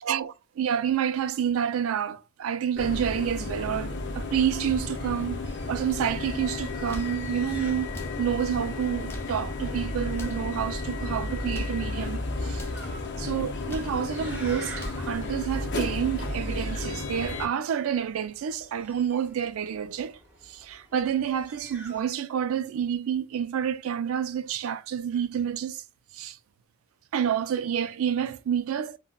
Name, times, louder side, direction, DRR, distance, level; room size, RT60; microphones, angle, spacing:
voice 1, 0.1-7.9 8.2-12.6 13.2-20.2 20.4-25.8 26.1-26.4 27.1-29.0, right 8 dB, 80° right, 0.3 m, -29 dB
sound 1, 2.8-17.5, left 2 dB, 55° left, 0.6 m, -33 dB
sound 2, 5.4-22.0, right 1 dB, 10° right, 1.3 m, -50 dB
sound 3, 6.9-7.2 7.9-8.2 8.9-9.4 10.1-10.5 11.3-11.8 12.5-12.8 13.5-14.0 14.6-15.1, equal, 10° left, 0.4 m, -40 dB
3.6 x 2.1 x 2.2 m
head